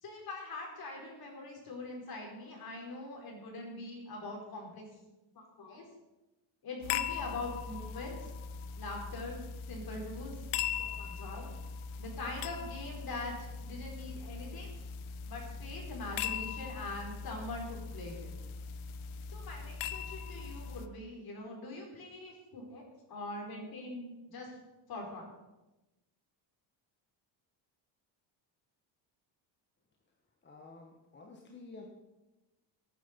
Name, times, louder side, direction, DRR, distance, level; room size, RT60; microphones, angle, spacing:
voice 1, 0.0-4.9 5.3-5.8 6.6-8.3 8.8-9.4 9.7-10.4 10.8-11.5 12.0-14.7 15.3-18.3 19.3-22.8 23.1-24.5 24.9-25.2, left 2 dB, 50° left, 0 dB, 4.8 m, -43 dB
sound 1, 6.8-20.9, left 7 dB, 90° left, 1.0 m, -40 dB
voice 2, 30.4-31.9, left 3 dB, 25° left, 1 dB, 1.4 m, -51 dB
18.0 x 9.4 x 5.3 m, 1.0 s
cardioid pair, 155°, 47 cm